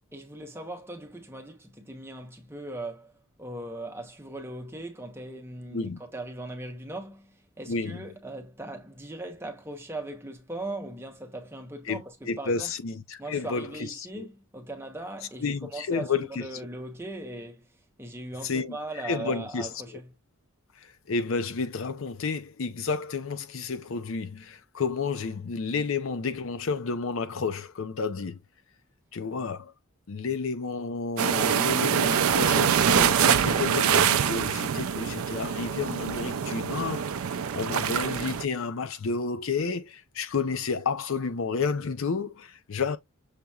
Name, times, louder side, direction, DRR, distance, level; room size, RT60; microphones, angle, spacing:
voice 1, 0.1-3.1 3.4-12.7 13.2-17.7 18.0-20.1, right 2 dB, 10° right, 0.9 m, -39 dB
voice 2, 7.7-8.0 11.9-14.3 15.4-16.6 18.4-18.8 19.0-19.7 20.8-28.4 29.1-29.7 30.1-43.0, left 4 dB, 60° left, 0.5 m, -31 dB
sound 1, 31.2-38.4, right 8 dB, 70° right, 0.4 m, -24 dB
6.5 x 2.9 x 2.3 m
head